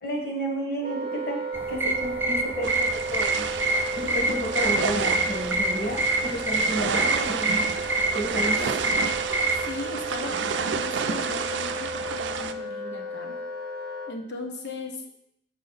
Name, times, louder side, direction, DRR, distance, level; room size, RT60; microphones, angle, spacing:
voice 1, 0.0-1.4 1.7-3.4 4.0-7.7 8.1-8.8, equal, 55° left, 0 dB, 1.6 m, -31 dB
Wind instrument woodwind instrument, 0.8-14.2, right 1 dB, 50° right, 0.8 m, -34 dB
sound 1, 1.5-9.7, right 2 dB, 10° right, 0.4 m, -27 dB
sound 2, 2.6-12.5, right 6 dB, 85° right, 0.4 m, -31 dB
voice 2, 8.8-9.2 9.6-10.4 10.6-13.3 14.1-15.2, left 2 dB, 75° left, 3 dB, 1.1 m, -37 dB
6.7 x 4.9 x 4.0 m, 0.75 s
head